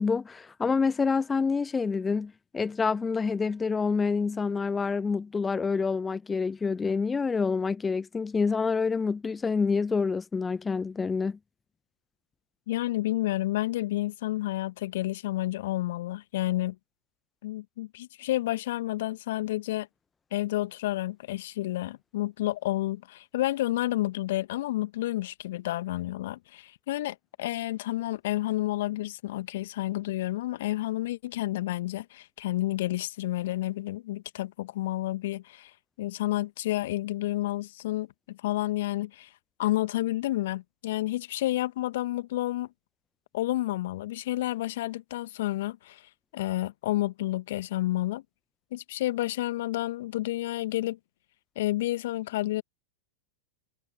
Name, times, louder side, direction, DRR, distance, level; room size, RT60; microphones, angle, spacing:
voice 1, 0.0-11.4, left 5 dB, 15° left, 0.9 m, -27 dB
voice 2, 12.7-16.8 17.4-19.9 20.3-35.7 36.0-39.3 39.6-42.7 43.3-46.0 46.3-48.2 48.7-51.0 51.6-52.6, left 16 dB, 60° left, 1.3 m, -30 dB
figure-of-eight pair, 95°, 0 cm